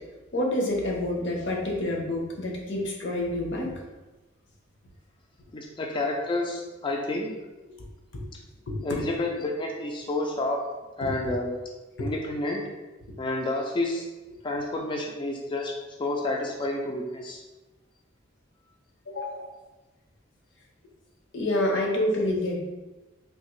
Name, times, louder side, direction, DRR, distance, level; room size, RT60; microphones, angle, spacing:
voice 1, 0.3-3.7 8.1-8.2 8.7-8.8 11.0-11.1 12.0-12.1 19.1-19.5 21.3-22.7, left 1 dB, 60° left, 0 dB, 0.7 m, -28 dB
voice 2, 5.5-7.3 8.8-10.7 11.0-11.6 12.0-12.7 13.2-14.1 14.4-17.4, left 2 dB, 25° left, 1 dB, 0.3 m, -29 dB
3.5 x 2.8 x 3.1 m, 1.1 s
head